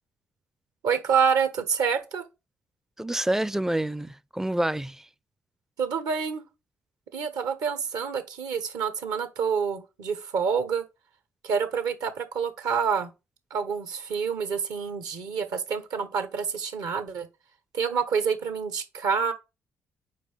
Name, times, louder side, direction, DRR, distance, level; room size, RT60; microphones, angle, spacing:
voice 1, 0.8-2.2 5.8-6.4 7.1-10.8 11.4-13.1 13.5-17.3 17.7-19.3, right 6 dB, 65° right, 1.1 m, -27 dB
voice 2, 3.0-5.0, right 1 dB, 5° right, 0.4 m, -27 dB
5.2 x 4.8 x 5.3 m
figure-of-eight pair, 40°, 7 cm